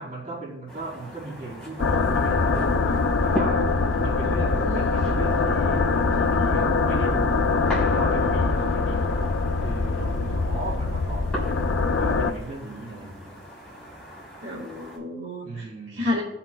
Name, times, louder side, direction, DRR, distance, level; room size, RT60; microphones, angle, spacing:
voice 1, 0.0-11.4 12.0-13.4 15.4-16.2, right 2 dB, 45° right, 2.7 m, -37 dB
sound 1, 0.7-15.0, left 1 dB, 5° left, 3.4 m, -39 dB
sound 2, 1.8-12.3, left 4 dB, 85° left, 0.5 m, -23 dB
voice 2, 14.4-15.6 15.9-16.2, left 1 dB, 60° right, 1.7 m, -30 dB
17.5 x 5.9 x 2.2 m
head